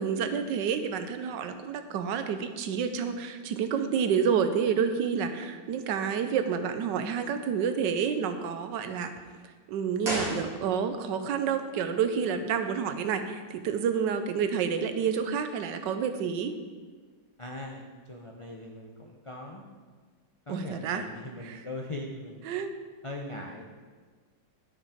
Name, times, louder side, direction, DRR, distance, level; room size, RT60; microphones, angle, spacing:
voice 1, 0.0-9.1 9.7-16.5 20.5-21.1 21.5-21.6 22.5-22.7, right 7 dB, 75° right, 9 dB, 1.4 m, -29 dB
sound 1, 10.0-11.1 11.4-11.5, right 1 dB, 55° right, 2.5 m, -34 dB
voice 2, 17.4-19.7 20.5-22.5 23.0-23.7, left 2 dB, 55° left, 0 dB, 0.3 m, -40 dB
12.0 x 6.3 x 5.0 m, 1.5 s
omnidirectional pair, 2.0 m